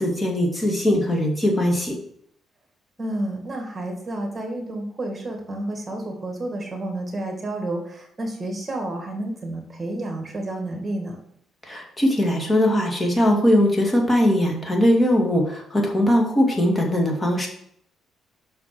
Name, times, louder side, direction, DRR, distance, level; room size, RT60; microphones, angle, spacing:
voice 1, 0.0-1.9 11.6-17.5, equal, 20° left, 1 dB, 2.4 m, -20 dB
voice 2, 3.0-11.2, right 1 dB, 30° right, 2 dB, 2.1 m, -30 dB
6.0 x 6.0 x 6.2 m, 0.69 s
cardioid pair, 90°, 0 cm